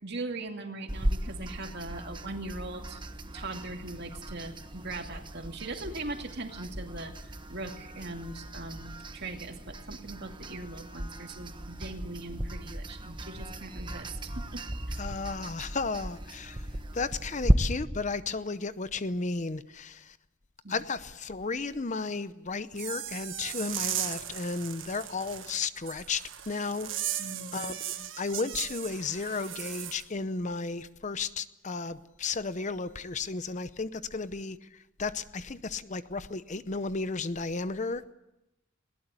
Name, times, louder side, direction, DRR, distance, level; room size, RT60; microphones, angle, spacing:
voice 1, 0.0-3.0 3.3-15.0 20.6-20.8 27.2-27.7, right 2 dB, 55° right, 4 dB, 2.4 m, -40 dB
sound 1, 0.9-17.5, right 1 dB, 25° right, 1.2 m, -35 dB
voice 2, 15.0-16.7 16.9-20.2 20.7-27.2 27.5-38.1, left 4 dB, 35° left, 14 dB, 0.7 m, -34 dB
sound 2, 22.7-30.0, right 11 dB, 70° right, 1.5 m, -37 dB
21.0 x 18.5 x 8.3 m, 0.91 s
head